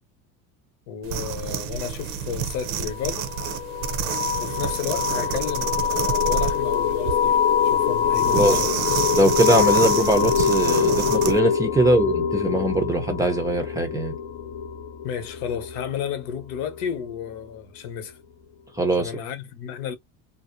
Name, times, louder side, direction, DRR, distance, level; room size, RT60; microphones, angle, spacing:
voice 1, 0.9-3.3 4.4-8.8 15.0-18.2 18.9-19.9, left 8 dB, 85° left, 1.0 m, -32 dB
sound 1, 1.0-11.4, right 8 dB, 70° right, 0.6 m, -29 dB
sound 2, 2.9-17.3, left 8 dB, 60° left, 0.5 m, -24 dB
voice 2, 8.3-8.6 9.1-14.1 18.8-19.1, right 1 dB, 10° right, 0.5 m, -21 dB
2.6 x 2.1 x 2.6 m
cardioid pair, 150°, 36 cm